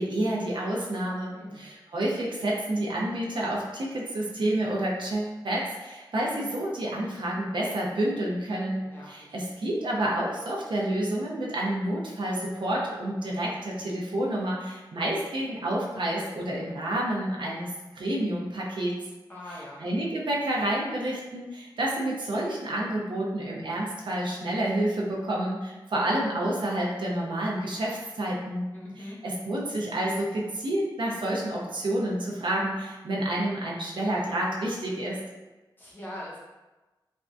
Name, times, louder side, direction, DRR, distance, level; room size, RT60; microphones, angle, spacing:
voice 1, 0.0-8.8 9.1-18.9 19.8-28.6 29.0-35.2, right 1 dB, 70° right, -3 dB, 0.6 m, -29 dB
voice 2, 1.3-1.7 8.8-9.4 19.3-19.8 28.7-29.2 35.8-36.4, left 1 dB, 20° left, -6 dB, 0.8 m, -42 dB
3.4 x 2.2 x 2.5 m, 1.1 s
wide cardioid pair, 100°, 9 cm